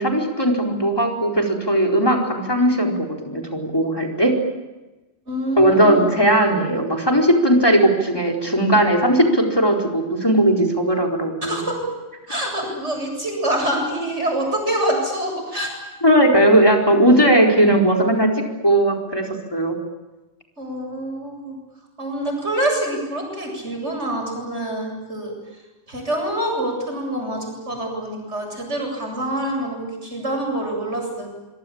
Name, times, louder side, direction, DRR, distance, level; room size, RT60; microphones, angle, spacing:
voice 1, 0.0-2.9 3.3-4.3 5.6-11.6 16.0-18.3 18.6-19.8, right 1 dB, 20° left, 1 dB, 4.5 m, -17 dB
voice 2, 5.3-6.1 11.4-11.8 12.3-15.7 20.6-21.6 22.0-25.3 25.9-31.3, right 1 dB, 75° right, 2 dB, 8.3 m, -26 dB
25.5 x 23.5 x 8.8 m, 1.1 s
omnidirectional pair, 1.2 m